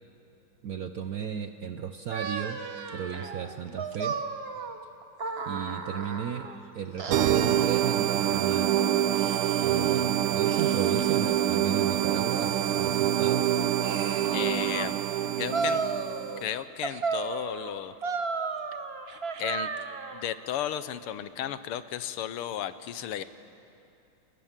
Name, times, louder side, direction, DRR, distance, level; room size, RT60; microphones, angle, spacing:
voice 1, 0.6-2.6 2.9-4.2 5.4-6.5 6.7-8.9 9.6-13.5, right 8 dB, 65° right, 8 dB, 0.9 m, -34 dB
sound 1, 2.1-6.6 7.0-8.5 9.1-10.1 10.4-11.5 12.0-14.9 15.5-16.5 16.8-20.3, right 4 dB, 40° right, 0.9 m, -35 dB
sound 2, 7.1-16.5, right 11 dB, 85° right, 1.6 m, -26 dB
voice 2, 14.3-15.0 15.4-15.8 16.4-18.0 19.4-19.7 20.1-23.2, left 11 dB, 90° left, 13 dB, 1.8 m, -34 dB
29.0 x 20.0 x 7.4 m, 2.7 s
omnidirectional pair, 2.4 m